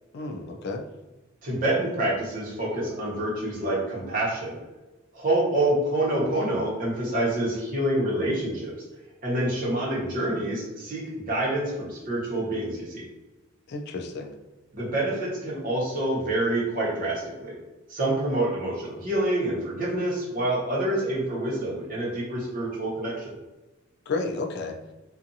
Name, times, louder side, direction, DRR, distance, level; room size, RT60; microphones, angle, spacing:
voice 1, 0.1-0.8 13.7-14.3 24.1-24.8, left 3 dB, 55° left, 3 dB, 0.3 m, -31 dB
voice 2, 1.4-4.6 5.1-8.7 9.2-13.0 14.7-17.6 17.9-23.3, right 1 dB, 45° right, -6 dB, 1.0 m, -27 dB
2.6 x 2.4 x 2.6 m, 1.1 s
head